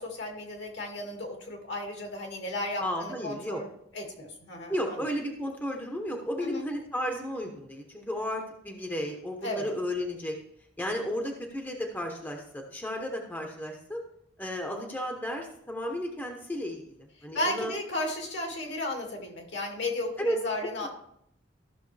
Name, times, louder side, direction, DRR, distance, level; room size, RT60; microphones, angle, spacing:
voice 1, 0.0-5.1 6.4-6.7 9.4-9.7 17.3-20.9, left 1 dB, 65° left, 1 dB, 2.2 m, -34 dB
voice 2, 2.8-3.6 4.7-10.4 10.8-14.0 14.4-17.7 20.2-20.4 20.8-20.9, left 1 dB, 10° left, 2 dB, 1.0 m, -33 dB
14.0 x 6.2 x 3.3 m, 0.72 s
head